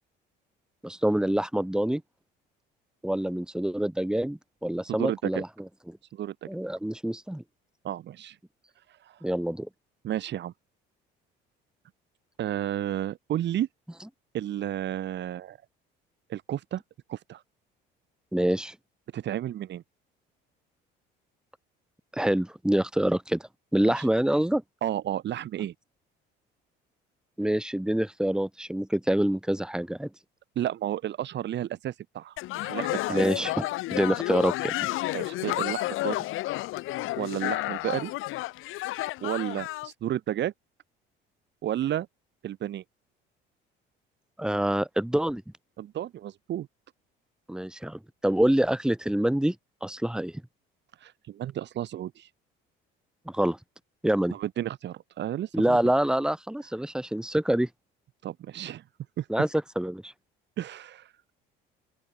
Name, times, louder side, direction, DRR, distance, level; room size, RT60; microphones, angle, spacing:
voice 1, 0.8-2.0 3.0-5.5 5.9-6.0 6.5-7.4 9.2-9.7 18.3-18.7 22.1-23.4 23.7-24.6 27.4-30.1 33.1-34.9 44.4-45.4 47.5-49.5 49.8-50.3 53.3-53.6 54.0-54.3 55.5-57.7 59.3-59.5 59.7-60.1, right 1 dB, 5° right, 5.0 m, -26 dB
voice 2, 4.9-5.4 6.1-6.3 7.8-8.4 9.1-9.2 10.0-10.5 12.4-13.7 14.3-15.6 16.3-16.8 17.1-17.4 19.1-19.8 23.8-24.1 24.8-25.7 30.5-32.3 32.6-33.3 35.1-36.2 37.2-38.1 39.2-40.5 41.6-42.1 42.4-42.8 45.8-46.7 51.0-52.3 54.3-55.8 58.2-58.8 59.2-59.3 60.6-61.1, right 12 dB, 55° right, 4.9 m, -32 dB
sound 1, 32.4-39.9, left 17 dB, 75° left, 7.6 m, -31 dB
open air
cardioid pair, 100°, 21 cm